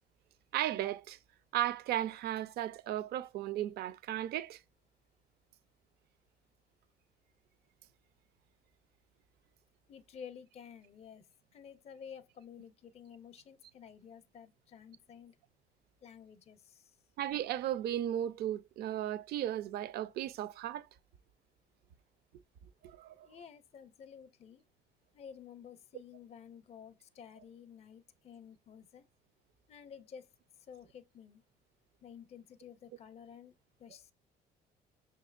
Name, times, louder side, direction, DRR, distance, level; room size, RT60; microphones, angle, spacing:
voice 1, 0.5-1.2 1.5-4.6 17.2-20.9 22.8-23.3, right 12 dB, 70° right, 0.5 m, -35 dB
voice 2, 9.9-11.2 11.5-15.4 16.0-16.9 23.1-24.6 25.1-29.1 29.7-30.3 30.6-31.4 32.0-33.5 33.8-34.1, left 7 dB, 40° left, 0.5 m, -52 dB
5.6 x 2.8 x 2.4 m
cardioid pair, 110°, 17 cm